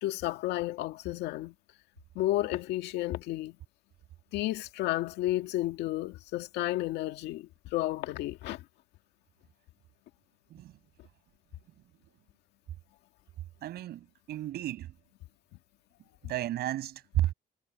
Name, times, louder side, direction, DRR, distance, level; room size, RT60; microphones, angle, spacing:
voice 1, 0.0-1.5 2.2-3.6 4.3-8.6, left 15 dB, 85° left, 1.8 m, -32 dB
voice 2, 13.6-14.9 16.2-17.3, right 13 dB, 70° right, 6.8 m, -32 dB
cardioid pair, 110°, 17 cm